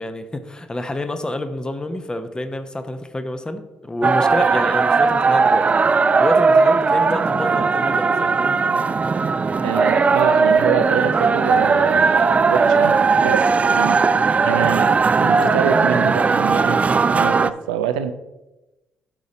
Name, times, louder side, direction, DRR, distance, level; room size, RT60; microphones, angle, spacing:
voice 1, 0.0-5.7 6.2-8.6 9.0-9.2, left 1 dB, 20° left, 8 dB, 0.9 m, -28 dB
sound 1, 4.0-17.5, right 4 dB, 35° right, 0.4 m, -17 dB
voice 2, 9.6-14.2 14.4-14.9 15.2-16.8 17.1-18.1, right 8 dB, 90° right, 10 dB, 0.5 m, -25 dB
12.0 x 4.1 x 4.0 m, 1.0 s
hypercardioid pair, 50°, 4 cm